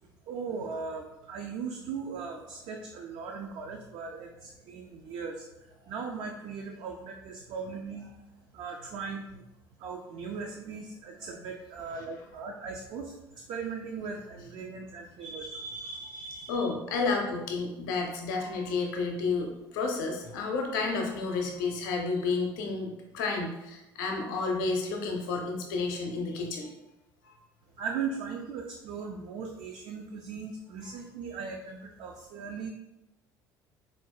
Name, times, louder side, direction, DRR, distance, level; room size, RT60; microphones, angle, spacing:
voice 1, 0.0-8.2 8.5-9.5 9.8-16.7 27.8-32.7, right 5 dB, 50° right, 1 dB, 0.4 m, -38 dB
voice 2, 16.5-26.7 27.2-27.3, left 4 dB, 65° left, 2 dB, 0.6 m, -31 dB
4.0 x 2.4 x 2.3 m, 0.93 s
figure-of-eight pair, 60°, 12 cm